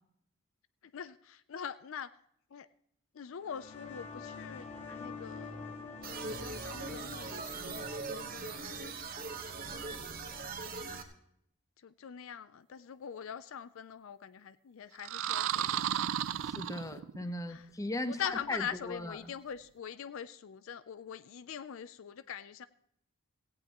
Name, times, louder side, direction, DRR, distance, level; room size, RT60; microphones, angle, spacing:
voice 1, 0.9-2.1 2.5-2.7 3.1-5.6 6.1-7.8 8.1-9.4 10.1-10.3 10.7-11.0 11.8-16.0 16.9-17.0 17.5-17.6 18.1-22.7, left 8 dB, 65° left, 14 dB, 0.4 m, -43 dB
sound 1, 3.4-10.8, left 4 dB, 30° left, 3.0 m, -47 dB
sound 2, 6.0-11.0, right 4 dB, 40° right, 1.2 m, -41 dB
sound 3, 15.0-17.3, right 10 dB, 65° right, 0.4 m, -33 dB
voice 2, 16.4-19.3, left 1 dB, 15° left, 10 dB, 0.7 m, -38 dB
17.0 x 16.0 x 3.0 m, 0.73 s
head